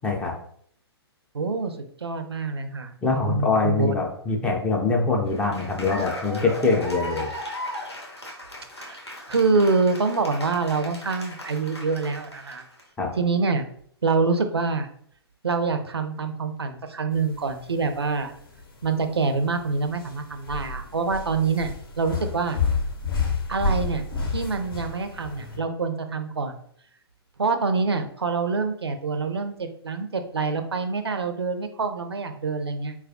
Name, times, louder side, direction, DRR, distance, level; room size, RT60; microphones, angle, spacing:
voice 1, 0.0-0.3 3.0-7.3 13.0-13.1, left 3 dB, 10° left, 0 dB, 0.3 m, -24 dB
voice 2, 1.3-1.8 2.0-2.9 3.3-3.9 8.8-9.0 9.3-12.6 13.2-13.6 14.0-14.9 15.4-18.3 18.8-22.6 23.5-24.0 24.3-26.6 27.4-33.0, right 4 dB, 75° right, 8 dB, 0.4 m, -25 dB
Cheering / Applause, 5.3-12.8, left 1 dB, 90° left, 0.9 m, -37 dB
sound 1, 17.1-25.6, left 4 dB, 60° left, 0.7 m, -30 dB
4.3 x 2.3 x 2.4 m, 0.63 s
figure-of-eight pair, 120°, 14 cm